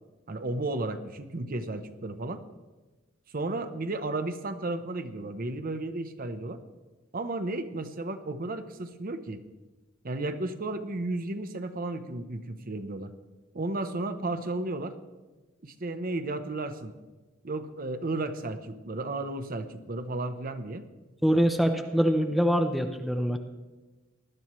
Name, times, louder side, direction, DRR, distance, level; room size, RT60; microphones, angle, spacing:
voice 1, 0.3-2.4 3.3-6.6 7.1-9.4 10.0-13.1 13.5-14.9 15.6-16.9 17.4-20.8, right 2 dB, 45° right, 8 dB, 0.8 m, -33 dB
voice 2, 21.2-23.4, equal, ahead, 5 dB, 0.6 m, -24 dB
19.5 x 11.5 x 3.1 m, 1.2 s
head